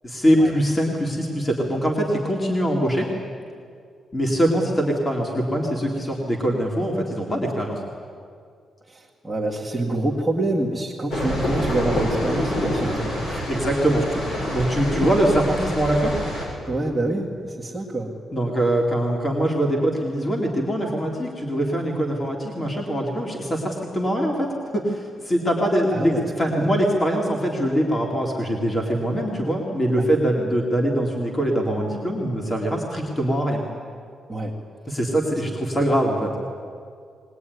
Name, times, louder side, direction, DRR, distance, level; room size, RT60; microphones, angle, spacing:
voice 1, 0.0-3.1 4.1-7.8 13.5-14.1 14.5-16.1 18.3-33.6 34.9-36.5, equal, 20° left, -1 dB, 2.5 m, -23 dB
voice 2, 8.9-13.5 16.6-18.1 25.9-26.7 29.9-30.1 30.4-30.5 34.3-34.5 34.8-34.9, right 2 dB, 5° right, -7 dB, 2.0 m, -27 dB
sound 1, 11.1-16.5, equal, 65° left, 7.6 m, -26 dB
21.5 x 20.0 x 9.5 m, 2.3 s
wide cardioid pair, 170°, 0 cm